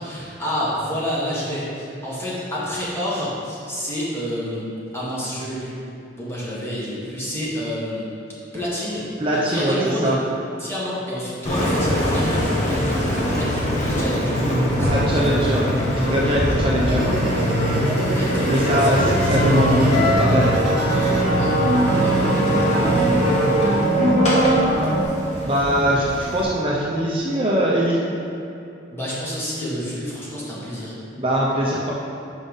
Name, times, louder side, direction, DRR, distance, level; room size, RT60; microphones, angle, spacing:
voice 1, 0.0-4.6 4.9-5.8 6.2-8.0 8.5-9.0 9.3-10.1 10.6-15.7 18.1-19.2 21.4-23.3 28.9-30.9, equal, 15° left, -8 dB, 1.6 m, -29 dB
voice 2, 9.2-10.2 14.8-15.7 16.0-17.3 18.5-20.5 25.4-28.0 31.2-31.9, equal, 30° right, -4 dB, 0.6 m, -21 dB
Engine, 11.4-26.4, equal, 40° left, 1.4 m, -22 dB
sound 1, 16.8-25.0, right 2 dB, 65° right, 0.8 m, -23 dB
5.5 x 5.1 x 5.4 m, 2.7 s
head